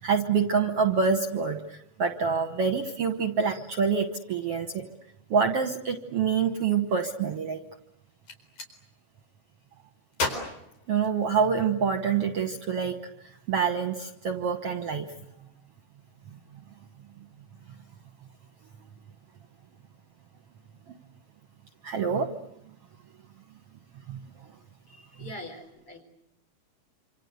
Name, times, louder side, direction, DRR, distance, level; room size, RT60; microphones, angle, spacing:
voice 1, 0.0-4.8 5.3-7.6 10.9-12.9 13.2-15.1 21.8-22.3 24.1-24.2, right 6 dB, 60° right, 8 dB, 1.9 m, -26 dB
Gunshot gunfire, 8.1-8.7 10.1-11.6, left 3 dB, 60° left, 5.7 m, -34 dB
voice 2, 24.9-26.0, left 1 dB, 45° left, 6 dB, 5.0 m, -43 dB
27.0 x 27.0 x 8.1 m, 0.75 s
omnidirectional pair, 3.7 m